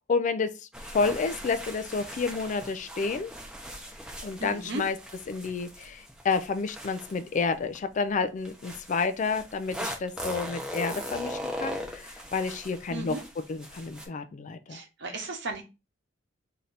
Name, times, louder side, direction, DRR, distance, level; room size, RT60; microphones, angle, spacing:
voice 1, 0.1-0.5 0.9-3.3 4.2-5.0 5.3-13.2 13.5-14.8, left 4 dB, 40° left, 0.4 m, -30 dB
sound 1, 0.7-7.8 8.4-14.1, equal, 5° right, 0.7 m, -39 dB
voice 2, 4.4-4.8 12.9-13.2 14.7-15.6, right 2 dB, 65° right, 1.0 m, -35 dB
3.2 x 2.8 x 3.9 m
head